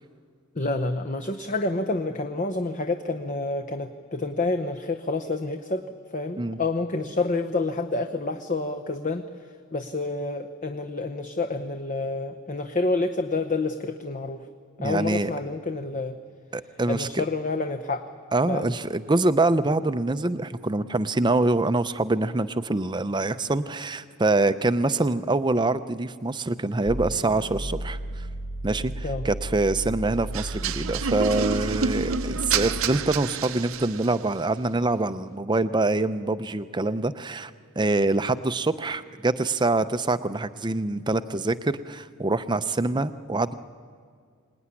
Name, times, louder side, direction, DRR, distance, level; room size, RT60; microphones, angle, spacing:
voice 1, 0.6-9.3 9.7-14.5 14.8-16.2 16.9-18.1 18.5-18.7 29.0-29.3, left 3 dB, 35° left, 6 dB, 0.9 m, -28 dB
voice 2, 14.8-15.3 16.5-17.2 18.3-28.3 28.6-37.5 37.8-43.5, right 2 dB, 20° right, 12 dB, 0.6 m, -25 dB
sound 1, 26.9-33.0, right 1 dB, 70° left, 2.8 m, -34 dB
sound 2, 30.3-34.3, right 5 dB, 75° right, 0.8 m, -29 dB
25.0 x 19.5 x 9.8 m, 2.1 s
head